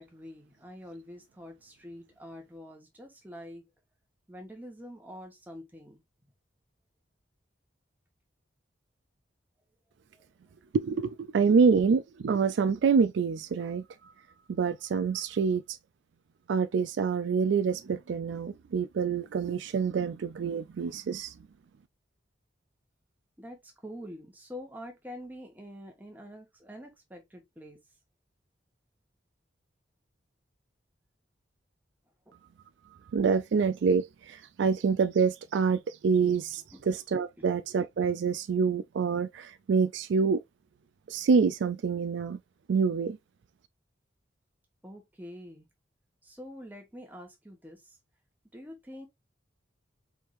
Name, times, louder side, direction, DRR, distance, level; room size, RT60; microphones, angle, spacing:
voice 1, 0.0-3.6 4.3-6.0 10.1-10.2 23.4-27.8 32.3-32.4 36.7-36.9 37.4-37.5 44.8-45.7 46.2-48.0 48.5-49.1, equal, 10° right, 1.3 m, -46 dB
voice 2, 10.7-13.8 14.5-15.6 16.5-21.3 33.1-40.4 41.1-42.4 42.7-43.2, right 5 dB, 65° right, 0.3 m, -26 dB
4.7 x 3.5 x 2.6 m
head